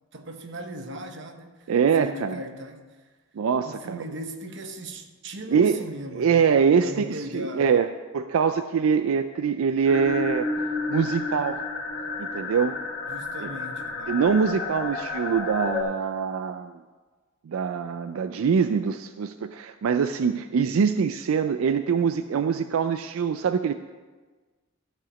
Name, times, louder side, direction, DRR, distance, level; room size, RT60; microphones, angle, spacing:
voice 1, 0.1-1.7 2.0-2.8 3.6-6.5 6.8-7.7 13.1-14.3, right 1 dB, 55° right, 1.0 m, -38 dB
voice 2, 1.7-2.4 3.4-4.0 5.5-5.8 6.1-7.9 8.1-10.5 10.9-11.6 12.2-12.8 13.4-13.5 14.1-16.7 17.5-23.7, right 6 dB, 80° right, 0.4 m, -24 dB
sound 1, 9.9-15.8, left 3 dB, 60° left, 2.0 m, -31 dB
13.0 x 4.9 x 7.0 m
head